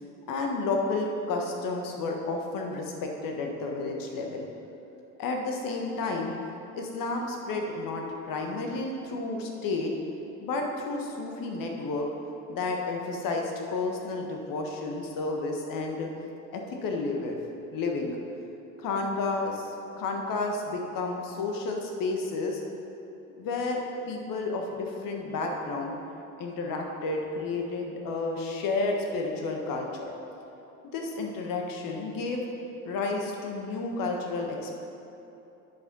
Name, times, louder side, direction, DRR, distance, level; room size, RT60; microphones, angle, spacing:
voice 1, 0.3-4.5 5.2-6.3 6.7-9.9 10.4-12.1 12.5-16.1 16.5-17.4 17.7-18.2 18.8-22.6 23.4-23.8 24.1-26.0 26.4-30.1 30.9-32.5 32.8-34.8, left 3 dB, 50° left, 1 dB, 1.4 m, -31 dB
9.6 x 5.3 x 5.5 m, 2.9 s
figure-of-eight pair, 55°, 41 cm